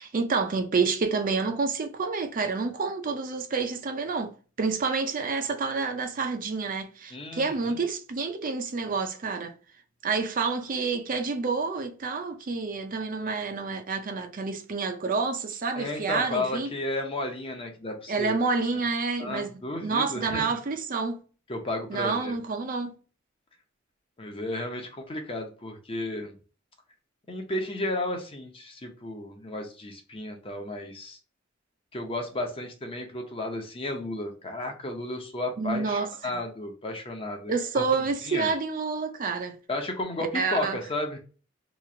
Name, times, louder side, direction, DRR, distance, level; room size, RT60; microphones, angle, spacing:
voice 1, 0.0-9.5 10.0-16.7 18.1-19.5 19.8-21.2 21.9-22.9 35.6-36.1 37.5-39.6 40.3-40.8, right 4 dB, 45° right, 0.5 m, -28 dB
voice 2, 7.1-7.8 15.8-18.4 19.2-20.4 21.5-22.3 24.2-26.3 27.3-31.2 31.9-37.5 38.3-38.5 39.7-41.2, left 1 dB, 25° left, 0.7 m, -33 dB
3.0 x 2.5 x 3.7 m
head